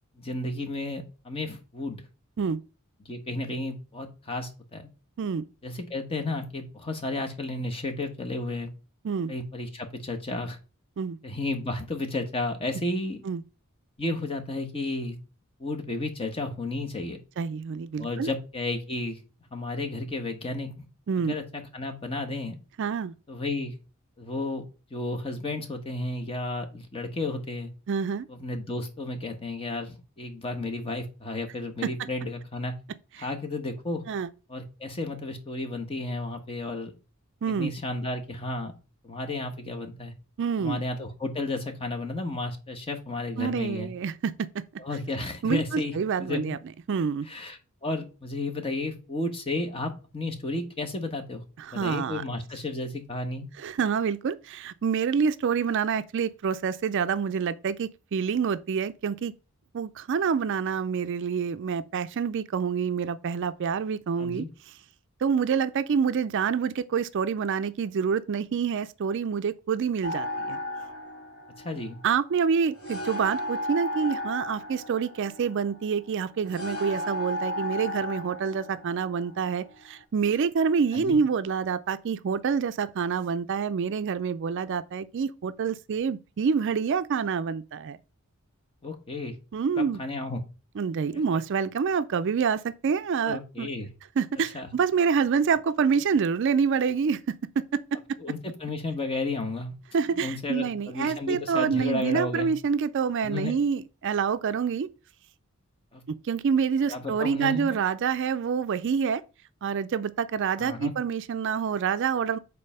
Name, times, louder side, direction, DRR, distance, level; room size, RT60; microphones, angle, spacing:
voice 1, 0.2-2.0 3.0-4.9 5.6-8.7 9.3-10.6 11.2-13.2 14.0-15.2 15.6-17.2 18.0-19.2 19.5-20.9 21.2-22.6 23.3-23.7 24.2-24.6 24.9-27.7 28.3-32.7 33.2-34.0 34.5-36.9 37.6-38.7 39.0-40.1 40.6-43.9 44.8-45.9 46.2-46.6 47.3-51.4 51.7-53.5 64.2-64.5 71.6-72.0 80.9-81.2 88.8-89.3 89.8-90.4 91.1-91.2 93.2-93.9 94.5-94.7 98.2-99.7 100.2-102.5 103.2-103.5 105.9-106.0 106.9-107.8 110.6-110.9, left 2 dB, 25° left, 1.2 m, -32 dB
voice 2, 17.4-18.3 21.1-21.4 22.8-23.1 27.9-28.3 31.8-32.1 33.2-33.3 34.1-34.3 37.4-37.7 40.4-40.9 43.4-44.6 45.4-46.6 46.9-47.3 51.6-52.2 53.6-59.3 59.7-64.5 65.2-70.6 72.0-88.0 89.5-90.0 90.8-93.7 94.2-98.0 99.9-104.9 106.3-109.2 109.6-112.4, right 6 dB, 55° right, 0.4 m, -27 dB
sound 1, 70.0-80.0, left 1 dB, 80° left, 2.9 m, -35 dB
5.4 x 4.0 x 5.5 m
head